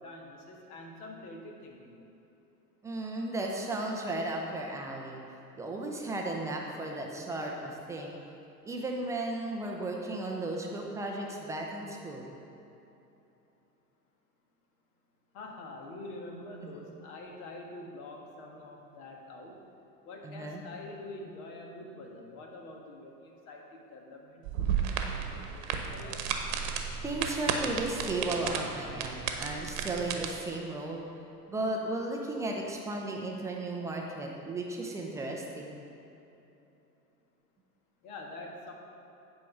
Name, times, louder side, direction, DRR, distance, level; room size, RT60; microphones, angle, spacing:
voice 1, 0.0-2.0 15.3-19.6 20.0-26.2 38.0-38.7, left 2 dB, 60° left, 0 dB, 1.7 m, -46 dB
voice 2, 2.8-5.2 5.6-8.2 8.7-12.3 16.6-16.8 20.2-20.6 27.0-31.1 31.5-35.8, right 2 dB, 5° right, 0 dB, 0.3 m, -35 dB
sound 1, 24.4-30.3, right 7 dB, 55° right, 1.0 m, -33 dB
9.1 x 4.7 x 5.8 m, 3.0 s
hypercardioid pair, 100°, 49 cm